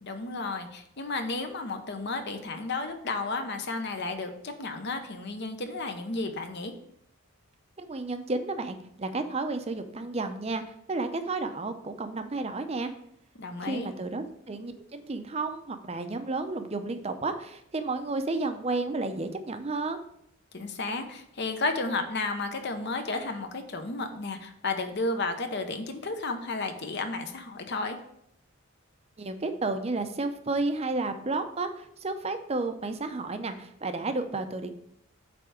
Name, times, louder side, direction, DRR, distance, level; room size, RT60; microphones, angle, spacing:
voice 1, 0.0-6.7 13.4-13.9 20.5-28.0, left 3 dB, 55° left, 6 dB, 0.8 m, -32 dB
voice 2, 7.8-10.6 10.9-12.9 13.6-20.0 29.2-34.7, right 3 dB, 30° right, 8 dB, 0.6 m, -32 dB
8.6 x 3.4 x 4.9 m, 0.72 s
head